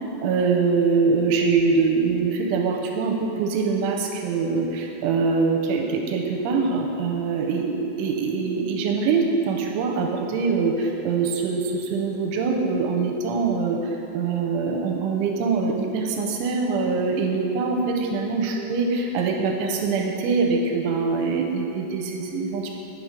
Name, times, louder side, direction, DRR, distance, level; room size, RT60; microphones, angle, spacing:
voice 1, 0.2-13.8 14.1-22.7, right 4 dB, 85° right, 1 dB, 3.0 m, -23 dB
9.0 x 6.5 x 5.1 m, 2.8 s
omnidirectional pair, 5.6 m